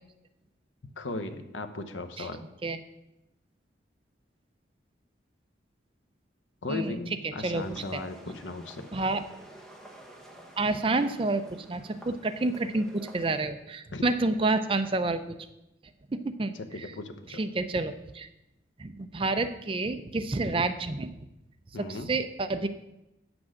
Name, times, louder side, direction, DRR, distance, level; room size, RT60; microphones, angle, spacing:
voice 1, 1.0-2.4 6.6-8.9 13.9-14.0 16.5-17.4 21.7-22.1, left 2 dB, 90° left, 7 dB, 0.9 m, -37 dB
sound 1, 7.5-13.5, right 1 dB, ahead, 0.9 m, -50 dB
voice 2, 8.9-9.2 10.6-15.4 16.1-16.9 17.4-18.3 18.8-21.1 21.8-22.7, right 2 dB, 30° right, 10 dB, 0.4 m, -29 dB
8.5 x 6.1 x 6.3 m, 0.90 s
head